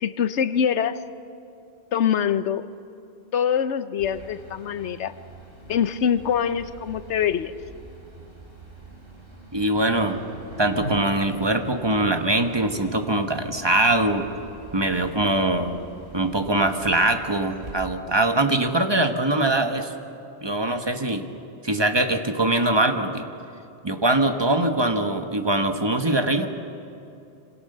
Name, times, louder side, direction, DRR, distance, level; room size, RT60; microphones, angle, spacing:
voice 1, 0.0-1.0 1.9-2.7 3.3-5.1 5.7-7.5, left 8 dB, 85° left, 13 dB, 1.1 m, -24 dB
sound 1, 4.0-17.8, right 1 dB, 55° right, 4.2 m, -42 dB
voice 2, 9.5-10.2 10.6-14.3 14.7-15.8 16.1-19.9 20.4-21.3 21.6-23.3 23.8-26.5, right 2 dB, 25° right, 6 dB, 1.4 m, -22 dB
26.5 x 26.5 x 6.7 m, 2.7 s
omnidirectional pair, 1.1 m